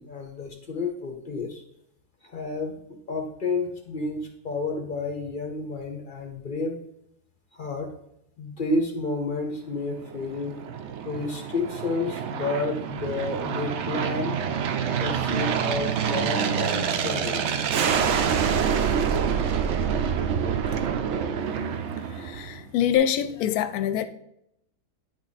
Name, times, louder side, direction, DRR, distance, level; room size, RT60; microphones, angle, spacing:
voice 1, 0.0-1.6 2.2-2.7 3.1-6.8 7.5-7.9 8.4-10.6 11.0-14.4 15.0-17.6, left 3 dB, 45° left, 0.7 m, -30 dB
Aircraft, 9.9-22.7, right 7 dB, 70° right, 0.6 m, -27 dB
voice 2, 22.2-24.1, left 9 dB, 70° left, 1.0 m, -25 dB
9.6 x 3.6 x 4.1 m
omnidirectional pair, 1.7 m